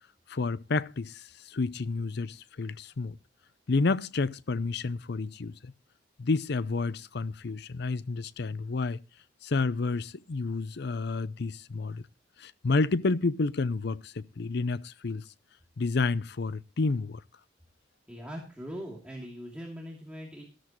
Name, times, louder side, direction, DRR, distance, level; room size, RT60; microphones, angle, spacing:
voice 1, 0.3-3.2 3.7-5.7 6.2-9.0 9.4-12.0 12.4-15.2 15.8-17.2, left 3 dB, 60° left, 0.6 m, -30 dB
voice 2, 18.1-20.4, equal, 5° right, 2.8 m, -41 dB
14.0 x 13.0 x 3.0 m
head